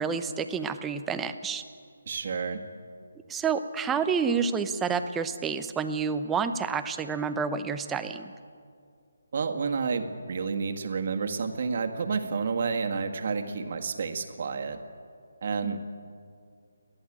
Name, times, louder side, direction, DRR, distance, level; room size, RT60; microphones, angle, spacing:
voice 1, 0.0-1.6 3.3-8.3 15.6-15.8, right 6 dB, 10° right, 9 dB, 0.8 m, -29 dB
voice 2, 2.1-2.6 9.3-14.8 15.4-15.9, right 5 dB, 50° right, 6 dB, 1.9 m, -30 dB
29.5 x 11.0 x 8.7 m, 2.2 s
figure-of-eight pair, 160°, 0 cm